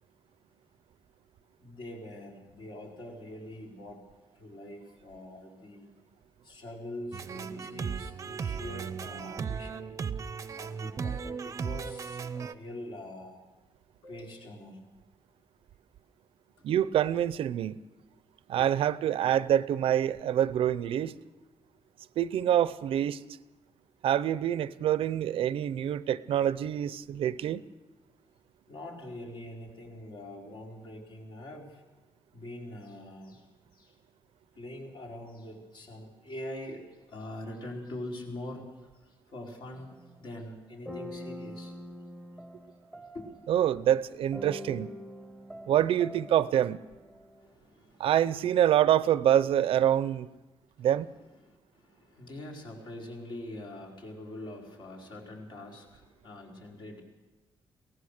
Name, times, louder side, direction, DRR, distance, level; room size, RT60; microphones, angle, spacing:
voice 1, 1.6-4.0 4.3-5.9 6.4-9.9 10.6-13.4 14.0-14.9 16.6-16.7 28.7-31.8 32.3-33.5 33.7-34.0 34.5-41.8 42.3-42.4 43.1-43.3 47.4-48.1 50.8-50.9 51.4-57.0, left 1 dB, 55° left, 4.4 m, -44 dB
sound 1, 7.1-12.5, right 6 dB, 35° right, 0.7 m, -36 dB
voice 2, 16.6-17.8 18.5-21.2 22.2-23.2 24.0-27.6 43.5-44.9 45.7-46.8 48.0-50.3 50.8-51.1, right 11 dB, 75° right, 0.6 m, -26 dB
sound 2, 39.8-40.2 40.8-43.6 44.3-47.5, left 1 dB, 10° left, 1.3 m, -44 dB
23.0 x 17.5 x 6.6 m
wide cardioid pair, 175°, 9 cm